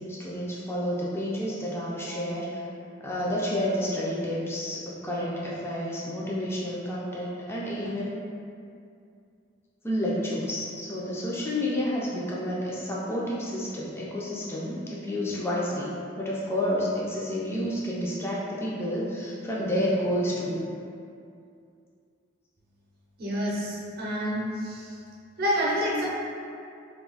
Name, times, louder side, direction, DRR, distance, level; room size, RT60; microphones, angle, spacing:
voice 1, 0.0-2.6 3.0-8.2 9.8-20.7, equal, 15° left, -6 dB, 0.4 m, -30 dB
voice 2, 23.2-25.0 25.4-26.1, equal, 50° right, -4 dB, 0.7 m, -28 dB
2.6 x 2.3 x 3.9 m, 2.4 s
head